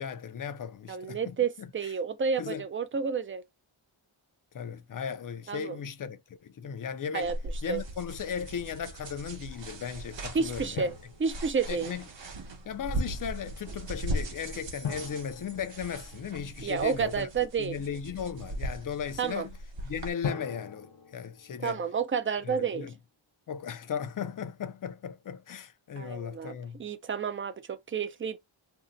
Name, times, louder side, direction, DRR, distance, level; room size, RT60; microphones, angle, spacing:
voice 1, 0.0-1.9 2.4-2.6 4.5-7.3 7.6-10.9 11.7-12.0 12.7-17.3 17.6-19.5 19.8-21.8 22.4-22.9 23.5-26.8, left 7 dB, 45° left, 0.4 m, -37 dB
voice 2, 0.9-3.4 5.5-5.8 7.1-7.4 7.7-7.8 10.3-10.9 11.2-11.9 16.6-17.7 19.2-19.5 21.6-22.9 26.0-28.4, right 6 dB, 30° right, 0.3 m, -30 dB
sound 1, 7.2-20.1, right 1 dB, 60° right, 0.9 m, -39 dB
Drum, 10.8-11.8 14.8-16.7 20.2-22.2, left 6 dB, 65° left, 1.0 m, -40 dB
2.7 x 2.1 x 3.7 m
wide cardioid pair, 110°, 50 cm